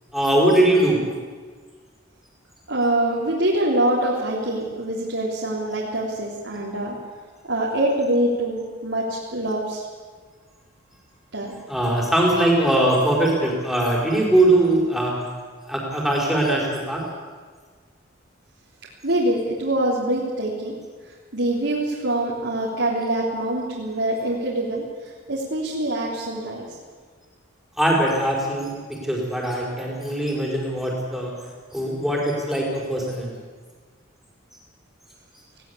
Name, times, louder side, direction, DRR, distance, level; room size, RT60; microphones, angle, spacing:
voice 1, 0.1-1.0 11.7-15.1 15.7-17.0 27.8-31.3 31.7-33.4, right 1 dB, ahead, -3 dB, 5.0 m, -21 dB
voice 2, 2.7-7.0 7.5-9.8 11.3-11.5 19.0-20.7 21.3-24.8 25.3-26.7, right 1 dB, 70° right, -5 dB, 3.5 m, -24 dB
19.5 x 17.5 x 8.6 m, 1.5 s
head